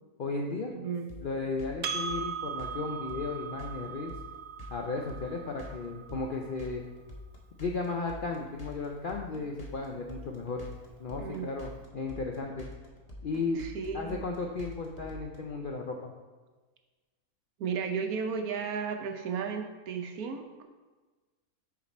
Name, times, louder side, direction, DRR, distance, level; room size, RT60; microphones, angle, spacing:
voice 1, 0.2-0.7 1.2-4.1 4.7-6.8 7.6-10.7 11.0-12.7 13.2-13.6 13.9-16.1, left 3 dB, 65° left, 1 dB, 0.5 m, -35 dB
voice 2, 0.7-1.1 11.2-11.5 13.6-14.2 17.6-20.7, right 6 dB, 80° right, 5 dB, 1.2 m, -34 dB
sound 1, 1.1-15.4, left 2 dB, 30° left, 1.0 m, -46 dB
Percussion, 1.8-6.6, right 6 dB, 60° right, 0.6 m, -39 dB
6.8 x 4.9 x 4.2 m, 1.3 s
omnidirectional pair, 1.5 m